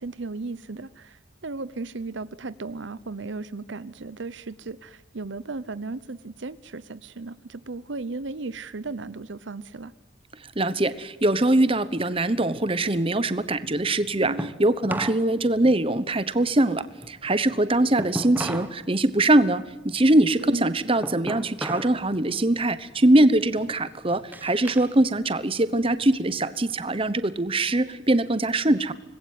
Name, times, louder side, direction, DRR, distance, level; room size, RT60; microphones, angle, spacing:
voice 1, 0.0-9.9 14.2-14.5 20.4-20.8, right 3 dB, 65° right, 16 dB, 0.8 m, -35 dB
voice 2, 10.6-28.9, right 1 dB, 25° right, 14 dB, 1.1 m, -22 dB
sound 1, 12.3-15.3 15.6-18.8 19.1-22.0 22.4-22.8 23.3-24.9 25.3-26.5, right 1 dB, 10° right, 1.3 m, -36 dB
26.0 x 20.5 x 9.5 m, 1.1 s
head